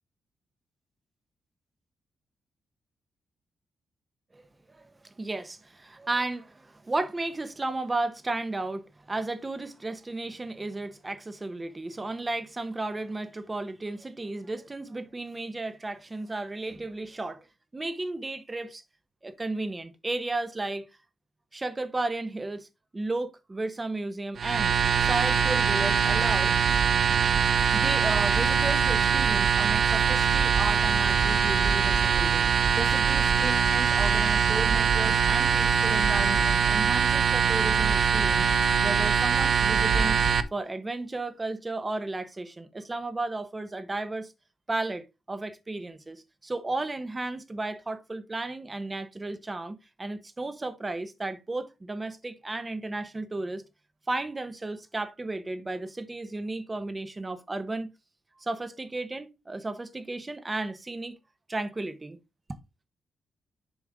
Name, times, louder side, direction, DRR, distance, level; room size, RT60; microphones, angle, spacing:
voice 1, 4.3-17.5 17.7-18.8 19.2-20.9 21.5-22.7 22.9-26.8 27.7-38.5 38.8-40.2 40.5-44.3 44.7-53.6 54.1-57.9 58.4-61.2 61.5-62.2, right 2 dB, 20° right, 1.0 m, -34 dB
sound 1, 24.4-40.4, right 6 dB, 60° right, 0.7 m, -23 dB
7.3 x 5.1 x 3.5 m
cardioid pair, 110°, 0 cm